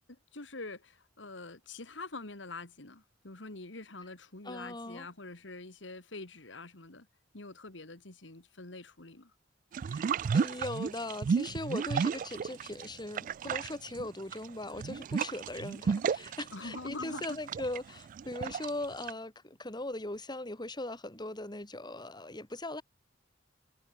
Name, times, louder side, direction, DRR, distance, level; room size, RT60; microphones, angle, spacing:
voice 1, 0.1-7.1 7.3-9.3 16.5-17.4, left 3 dB, 75° left, 2.5 m, -45 dB
voice 2, 4.4-5.1 9.9-22.8, left 2 dB, 25° left, 3.8 m, -39 dB
sound 1, 9.7-12.9 13.1-19.1, right 6 dB, 45° right, 0.3 m, -33 dB
head